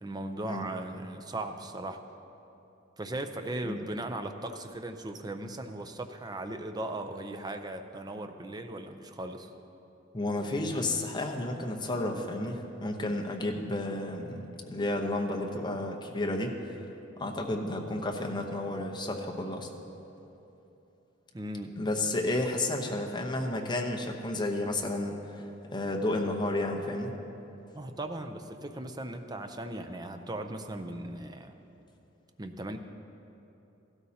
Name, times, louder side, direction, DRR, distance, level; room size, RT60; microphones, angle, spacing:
voice 1, 0.0-2.0 3.0-9.5 21.3-21.8 27.7-31.5 32.4-32.8, right 1 dB, 20° right, 6 dB, 0.6 m, -38 dB
voice 2, 10.1-16.8 17.2-19.7 21.8-27.1, left 2 dB, 25° left, 2 dB, 0.9 m, -32 dB
15.5 x 12.5 x 2.8 m, 3.0 s
head